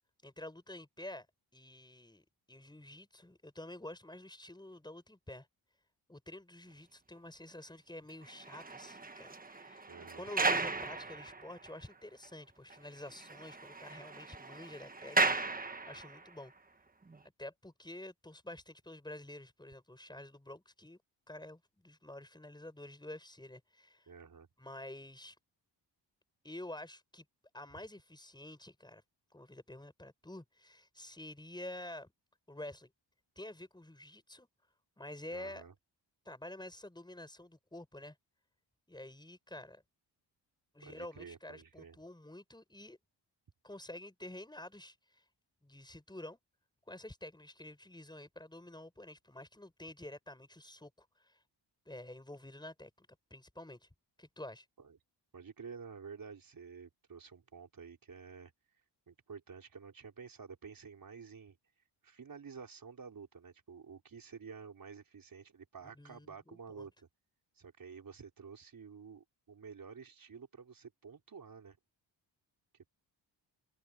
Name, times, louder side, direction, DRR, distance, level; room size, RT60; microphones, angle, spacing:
voice 1, 0.2-1.3 1.5-5.5 6.1-15.3 15.7-16.5 17.4-21.0 21.3-24.1 24.6-25.4 26.4-27.3 27.5-29.0 29.3-32.1 32.5-32.9 33.4-34.5 35.0-35.6 36.3-38.2 38.9-39.8 40.7-43.0 43.6-45.2 45.6-46.4 46.9-51.4 51.9-53.9 54.2-54.7 66.0-66.9, left 1 dB, 10° left, 7.1 m, -49 dB
sound 1, 8.2-11.9 12.2-12.3 12.7-12.8 13.1-16.3 17.0-17.2, right 3 dB, 20° right, 1.3 m, -36 dB
voice 2, 9.9-10.2 24.1-24.5 35.3-35.7 40.8-42.0 54.8-55.0 55.3-58.5 59.1-61.6 62.0-67.1 67.5-71.8, right 6 dB, 50° right, 4.5 m, -51 dB
cardioid pair, 105°, 45 cm